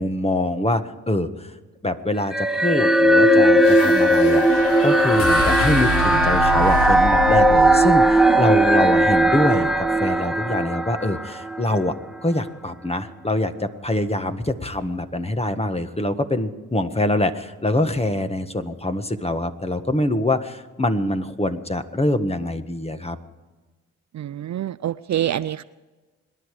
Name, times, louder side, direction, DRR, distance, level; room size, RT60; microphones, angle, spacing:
voice 1, 0.0-1.5 1.8-11.9 12.2-23.2, left 1 dB, 15° left, 8 dB, 1.6 m, -24 dB
sound 1, 2.3-11.8, right 1 dB, ahead, 1.2 m, -17 dB
sound 2, 3.6-10.0, left 2 dB, 80° left, 2.4 m, -28 dB
voice 2, 24.1-25.6, right 11 dB, 50° right, 15 dB, 0.5 m, -26 dB
26.0 x 10.5 x 4.9 m, 1.2 s
supercardioid pair, 45°, 36 cm